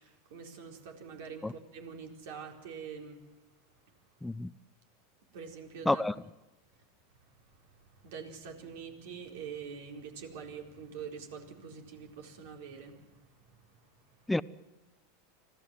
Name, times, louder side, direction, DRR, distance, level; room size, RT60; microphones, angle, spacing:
voice 1, 0.0-3.2 5.3-6.0 7.8-13.5 14.1-14.2, right 6 dB, 70° right, 4.2 m, -45 dB
voice 2, 4.2-4.5 5.9-6.1 14.3-14.4, left 2 dB, 5° left, 0.7 m, -28 dB
25.5 x 16.5 x 7.6 m
hypercardioid pair, 95°, 0 cm